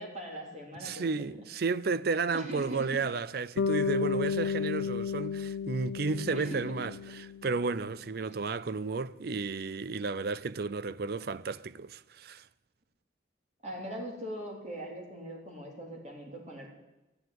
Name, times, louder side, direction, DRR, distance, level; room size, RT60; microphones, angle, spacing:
voice 1, 0.0-1.3 2.3-3.1 4.6-4.7 6.3-6.8 8.2-8.3 13.6-16.7, right 1 dB, 35° right, 3.5 m, -41 dB
voice 2, 0.8-6.9 7.2-12.5, right 4 dB, 55° right, 0.5 m, -33 dB
Bass guitar, 3.6-7.8, left 6 dB, 80° left, 0.4 m, -33 dB
13.5 x 9.3 x 9.4 m
head